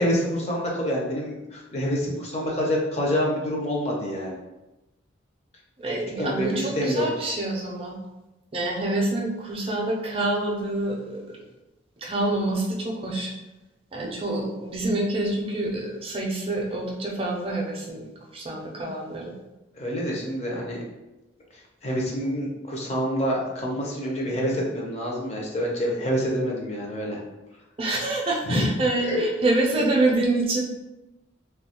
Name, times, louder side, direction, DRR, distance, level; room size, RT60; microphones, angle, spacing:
voice 1, 0.0-4.4 5.8-7.0 19.8-20.8 21.8-27.2 28.5-28.7 29.1-29.2 29.7-29.8, equal, 35° left, -2 dB, 0.5 m, -27 dB
voice 2, 5.8-8.0 8.5-11.4 12.0-13.3 13.9-18.1 18.3-19.3 27.8-30.6, right 2 dB, 30° right, -1 dB, 0.4 m, -26 dB
2.7 x 2.2 x 2.8 m, 1.0 s
head